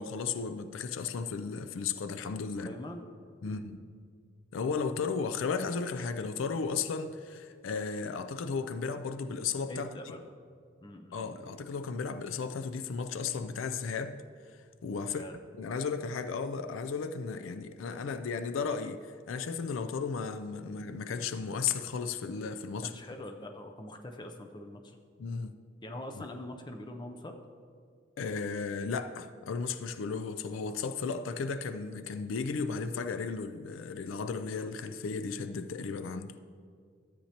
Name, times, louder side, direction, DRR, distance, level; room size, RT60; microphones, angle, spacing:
voice 1, 0.0-2.7 3.4-3.8 4.5-9.9 11.1-14.2 14.8-15.2 15.6-22.9 25.2-25.5 26.2-26.3 28.2-36.4, left 5 dB, 85° left, 0.4 m, -34 dB
voice 2, 2.6-3.1 3.4-3.8 9.7-10.2 10.8-11.5 15.1-15.4 22.8-25.0 25.8-27.3, left 1 dB, 20° left, 0.5 m, -43 dB
13.0 x 8.5 x 2.9 m
head